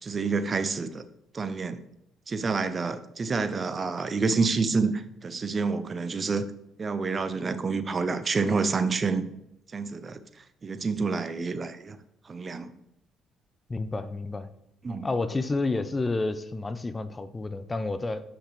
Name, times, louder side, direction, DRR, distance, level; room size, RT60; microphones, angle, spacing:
voice 1, 0.0-1.0 1.3-1.8 2.3-6.4 6.8-9.3 9.7-10.2 10.6-12.0 12.3-12.7 14.8-15.1, right 4 dB, 40° right, 12 dB, 0.7 m, -28 dB
voice 2, 13.7-14.5 15.0-18.2, left 3 dB, 25° left, 12 dB, 0.7 m, -30 dB
8.2 x 5.9 x 3.3 m, 0.81 s
hypercardioid pair, 50°, 0 cm